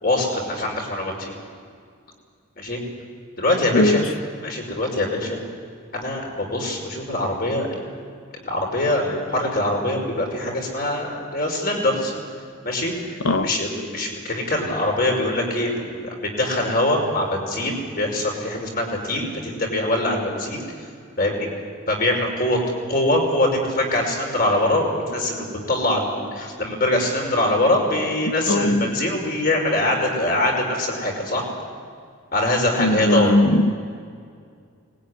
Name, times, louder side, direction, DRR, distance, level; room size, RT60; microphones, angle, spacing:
voice 1, 0.0-1.3 2.6-2.8 3.4-4.0 4.4-5.4 5.9-7.9 8.5-12.1 12.6-12.9 13.4-20.6 21.2-21.5 21.9-22.6 22.9-31.4 32.3-33.4, left 1 dB, 45° left, 5.4 m, -23 dB
voice 2, 3.7-4.1 13.2-13.5 28.5-29.0 32.8-33.7, left 1 dB, 90° left, 1.1 m, -19 dB
24.0 x 21.0 x 9.9 m
head